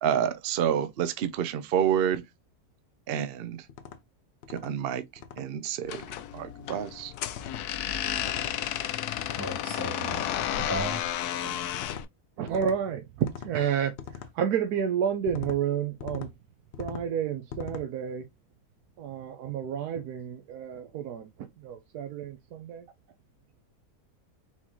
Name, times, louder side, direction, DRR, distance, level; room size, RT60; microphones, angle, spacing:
voice 1, 0.0-2.2 3.1-3.7 4.5-6.0 6.3-7.1, right 9 dB, 65° right, 0.6 m, -28 dB
sound 1, 3.7-4.0 4.4-4.7 5.2-5.4 5.9-6.2 7.3-7.7 8.2-8.6 9.1-9.5 10.1-10.5 11.7-12.1 12.5-12.8 13.2-13.5 14.0-14.3 15.3-15.6 16.0-16.3 16.7-17.1 17.5-17.9, left 7 dB, 60° left, 0.8 m, -41 dB
sound 2, 5.8-12.0, left 11 dB, 90° left, 1.1 m, -32 dB
voice 2, 9.4-10.2 10.6-11.0, equal, 15° left, 2.4 m, -34 dB
voice 3, 12.4-13.0 13.4-13.9 14.3-16.3 16.8-18.2 19.0-21.3 21.6-22.8, right 8 dB, 85° right, 1.2 m, -30 dB
4.4 x 3.6 x 2.9 m
omnidirectional pair, 1.6 m